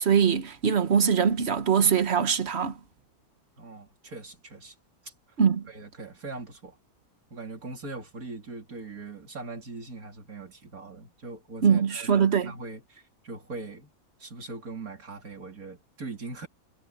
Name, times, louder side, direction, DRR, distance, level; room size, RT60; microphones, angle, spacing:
voice 1, 0.0-2.8 5.4-5.6 11.6-12.5, right 7 dB, 45° right, 1.4 m, -22 dB
voice 2, 3.6-4.8 5.0-5.1 5.7-6.8 7.3-13.9 14.2-16.5, right 3 dB, 70° right, 3.8 m, -41 dB
omnidirectional pair, 1.6 m